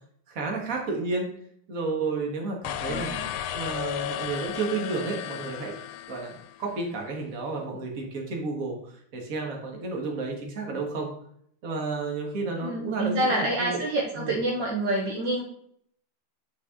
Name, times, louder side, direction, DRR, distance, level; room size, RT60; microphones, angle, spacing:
voice 1, 0.3-1.3 1.7-3.1 3.5-5.8 6.1-6.3 6.6-11.1 11.6-13.8 14.2-14.3, right 3 dB, 45° right, 0 dB, 1.8 m, -31 dB
sound 1, 2.6-6.8, left 11 dB, 85° left, 1.5 m, -34 dB
voice 2, 2.9-3.2 10.6-10.8 12.6-15.4, right 1 dB, 60° right, -2 dB, 1.8 m, -27 dB
8.9 x 4.7 x 3.7 m, 0.66 s
omnidirectional pair, 2.3 m